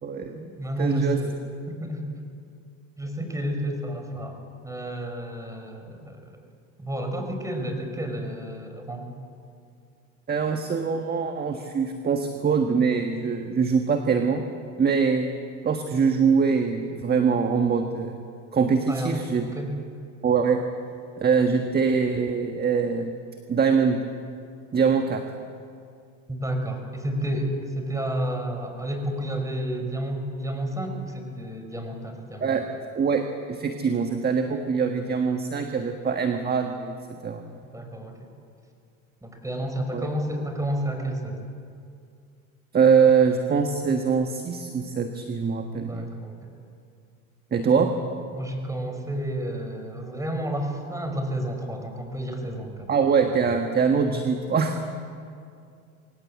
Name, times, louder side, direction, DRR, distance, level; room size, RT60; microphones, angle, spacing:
voice 1, 0.0-0.5 0.8-1.2 10.3-14.4 14.8-15.3 15.6-18.1 18.5-19.5 20.2-20.6 21.2-23.1 23.5-24.0 24.7-25.2 32.4-32.6 32.9-37.0 37.2-37.4 39.9-40.1 42.7-46.1 47.5-47.9 52.9-54.8, right 6 dB, 25° right, 5 dB, 1.5 m, -23 dB
voice 2, 0.6-1.4 1.7-2.2 3.0-4.4 4.6-6.4 6.8-9.1 18.9-19.3 19.5-19.7 26.3-32.5 37.6-38.1 39.2-41.4 45.7-46.4 48.3-52.9, right 1 dB, 10° right, 4 dB, 5.3 m, -31 dB
24.0 x 19.0 x 8.5 m, 2.4 s
supercardioid pair, 100°, 40 cm